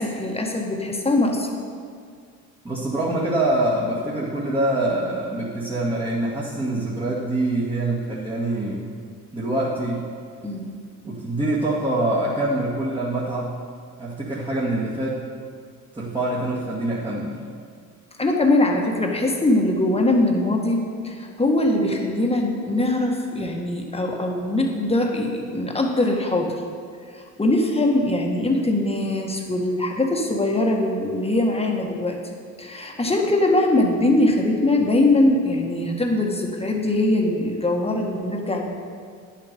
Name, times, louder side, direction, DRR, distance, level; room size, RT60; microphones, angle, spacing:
voice 1, 0.0-1.5 10.4-10.7 18.2-26.6 27.1-32.2 32.6-38.7, left 2 dB, 15° left, 1 dB, 1.7 m, -22 dB
voice 2, 2.6-8.9 9.3-10.1 11.0-13.6 14.0-15.2 16.0-17.4, right 1 dB, 15° right, -7 dB, 2.0 m, -25 dB
10.0 x 7.4 x 5.3 m, 2.1 s
supercardioid pair, 75°, 34 cm